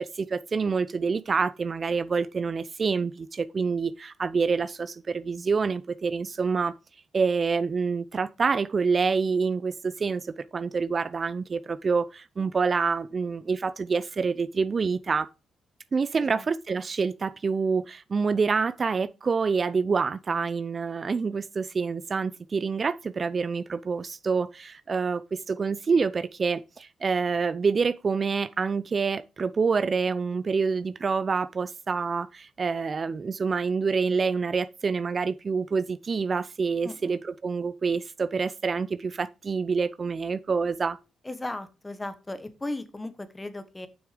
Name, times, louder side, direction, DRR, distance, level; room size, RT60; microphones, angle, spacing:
voice 1, 0.0-6.7 7.1-15.3 15.9-41.0, right 5 dB, 40° right, 0.5 m, -27 dB
voice 2, 36.8-37.2 41.2-43.9, left 2 dB, 15° left, 1.3 m, -36 dB
7.1 x 6.3 x 5.1 m
cardioid pair, 85°, 0 cm